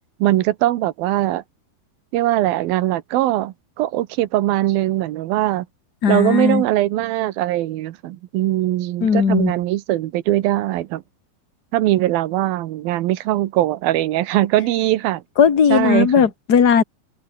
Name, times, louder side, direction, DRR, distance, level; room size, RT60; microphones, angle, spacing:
voice 1, 0.2-1.4 2.1-5.7 6.1-11.0 11.7-15.2 15.7-16.3, right 15 dB, 75° right, 2.8 m, -21 dB
voice 2, 6.0-6.6 9.0-9.5 15.4-16.8, left 7 dB, 35° left, 1.8 m, -16 dB
open air
omnidirectional pair, 4.4 m